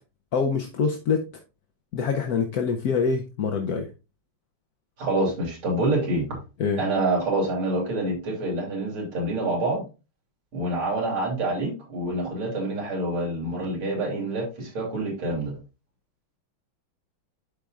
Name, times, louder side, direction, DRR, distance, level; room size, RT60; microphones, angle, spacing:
voice 1, 0.3-1.2 1.9-3.9 6.6-6.8, left 5 dB, 60° left, 4 dB, 1.1 m, -25 dB
voice 2, 5.0-6.4 6.8-9.8 10.5-15.5, right 2 dB, 75° right, -2 dB, 3.3 m, -27 dB
11.5 x 5.1 x 2.4 m, 0.29 s
omnidirectional pair, 2.3 m